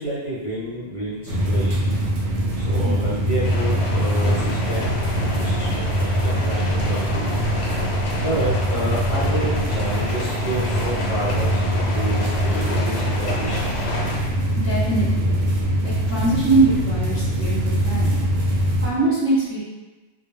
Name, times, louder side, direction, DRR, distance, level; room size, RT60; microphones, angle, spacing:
voice 1, 0.0-2.0 2.6-4.9 5.2-7.4 8.2-11.6 11.9-13.7, right 1 dB, 35° left, -10 dB, 0.7 m, -29 dB
sound 1, 1.3-18.9, right 1 dB, 85° right, 0.9 m, -23 dB
sound 2, 3.4-14.2, left 3 dB, 85° left, 0.9 m, -30 dB
voice 2, 14.6-15.5 15.8-18.2 18.8-19.6, right 2 dB, 20° right, -11 dB, 0.4 m, -22 dB
2.2 x 2.2 x 3.1 m, 1.2 s
omnidirectional pair, 1.2 m